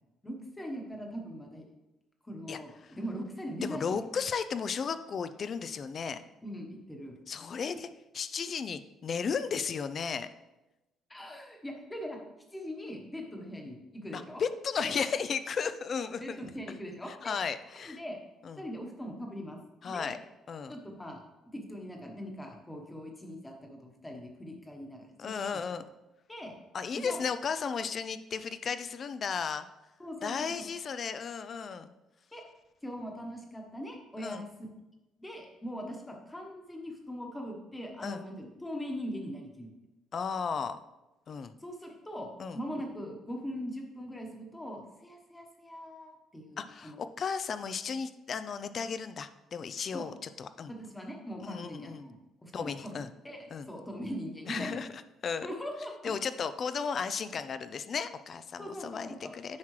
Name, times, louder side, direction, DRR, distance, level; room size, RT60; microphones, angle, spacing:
voice 1, 0.2-1.6 2.2-4.0 6.4-7.1 11.1-12.2 12.5-14.4 14.8-14.9 16.2-17.3 17.8-18.2 18.6-19.6 19.8-20.2 20.7-21.2 21.5-25.3 26.3-26.5 27.0-27.2 30.0-30.5 32.3-32.4 32.8-34.5 35.2-39.7 41.6-47.0 49.9-50.1 50.7-52.2 52.4-54.7 55.4-56.1 58.6-59.3, equal, 10° left, 1 dB, 1.1 m, -41 dB
voice 2, 2.5-3.0 3.6-6.2 7.3-7.9 8.1-10.3 14.1-16.4 17.1-18.0 18.4-18.6 19.8-20.2 20.5-20.8 25.2-25.8 26.7-29.7 30.2-31.9 34.2-34.5 38.0-38.2 40.1-40.8 41.3-41.5 42.4-42.6 46.6-50.7 51.4-52.1 52.5-53.1 53.5-53.7 54.5-55.5 56.0-59.6, left 6 dB, 35° left, 12 dB, 0.4 m, -35 dB
9.5 x 5.9 x 3.2 m, 1.0 s
cardioid pair, 160°, 0 cm